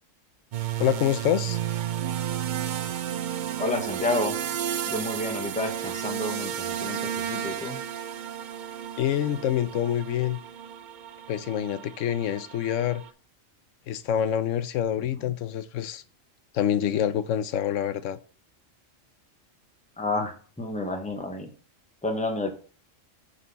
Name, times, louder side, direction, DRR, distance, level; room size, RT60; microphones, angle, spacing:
sound 1, 0.5-13.1, right 10 dB, 65° right, 0.4 m, -32 dB
voice 1, 0.8-1.6 9.0-10.4 11.3-13.0 13.9-16.0 16.5-18.2, left 10 dB, 80° left, 1.0 m, -26 dB
voice 2, 3.6-4.4 4.8-7.8 15.1-15.2 20.0-21.5 22.0-22.5, left 2 dB, 5° left, 1.0 m, -30 dB
9.7 x 4.3 x 4.1 m
omnidirectional pair, 1.3 m